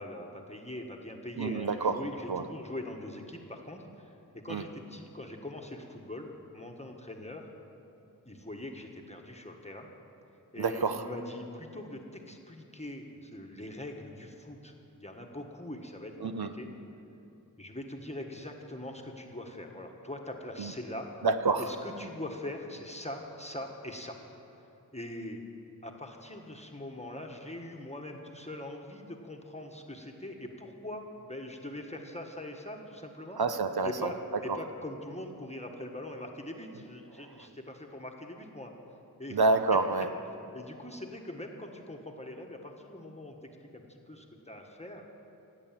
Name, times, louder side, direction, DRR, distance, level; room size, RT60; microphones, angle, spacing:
voice 1, 0.0-7.5 8.2-9.9 10.5-16.7 17.6-21.1 21.6-24.2 24.9-25.4 25.8-33.4 33.8-34.2 34.4-38.7 39.2-39.5 40.2-43.4 43.7-45.0, left 1 dB, 15° left, 1 dB, 1.4 m, -42 dB
voice 2, 1.4-2.0 2.3-2.4 4.5-4.6 10.6-11.0 16.2-16.5 20.6-20.7 21.2-21.6 33.4-34.1 39.3-40.1, right 3 dB, 75° right, 9 dB, 0.9 m, -27 dB
17.5 x 8.2 x 9.0 m, 2.8 s
wide cardioid pair, 65°, 38 cm